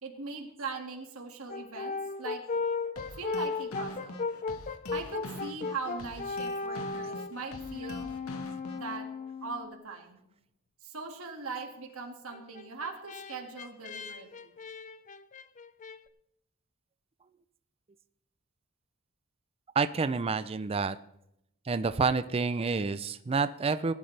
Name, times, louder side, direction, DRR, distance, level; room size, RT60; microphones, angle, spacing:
voice 1, 0.0-2.4 3.2-4.2 4.9-8.1 8.7-9.1 9.4-10.2 10.8-14.5, right 4 dB, 70° right, 2 dB, 2.1 m, -40 dB
Brass instrument, 1.5-9.8 12.3-16.0, left 4 dB, 35° left, 0.5 m, -36 dB
sound 1, 3.0-9.0, left 1 dB, 70° left, 1.2 m, -44 dB
voice 2, 19.8-21.0 21.7-23.9, right 4 dB, 25° right, 12 dB, 0.4 m, -28 dB
19.0 x 11.5 x 3.3 m, 0.79 s
head